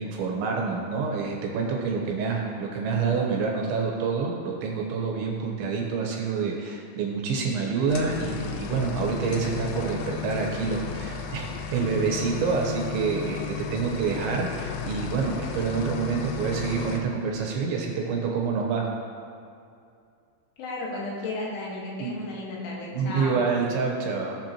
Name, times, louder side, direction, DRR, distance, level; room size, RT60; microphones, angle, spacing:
voice 1, 0.0-18.9 22.0-22.2 22.9-24.4, right 5 dB, 75° right, 0 dB, 3.2 m, -27 dB
sound 1, 7.9-17.0, left 7 dB, 90° left, 3.5 m, -34 dB
voice 2, 20.6-23.4, left 2 dB, 75° left, -4 dB, 3.9 m, -34 dB
19.5 x 6.9 x 3.0 m, 2.4 s
omnidirectional pair, 5.8 m